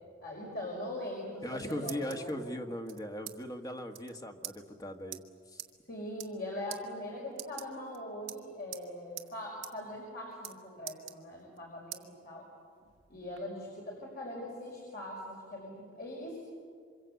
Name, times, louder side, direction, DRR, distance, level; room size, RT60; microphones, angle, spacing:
voice 1, 0.2-2.4 5.9-12.5 13.1-16.4, left 1 dB, 55° left, -2 dB, 5.6 m, -41 dB
sound 1, 1.3-2.3 2.9-3.4 3.6-3.7 3.9-4.1 4.4-4.6 5.1-5.2 5.6-5.7 6.1-6.4 6.7-6.8 7.3-8.0 8.3-8.9 9.2-9.3 9.6-9.7 10.0-10.6 10.9-11.6 11.9-12.0 12.5-13.4, right 14 dB, 80° right, 1.4 m, -44 dB
voice 2, 1.4-5.2 5.5-5.6, equal, 20° left, 5 dB, 1.6 m, -39 dB
28.0 x 25.5 x 8.3 m, 2.1 s
head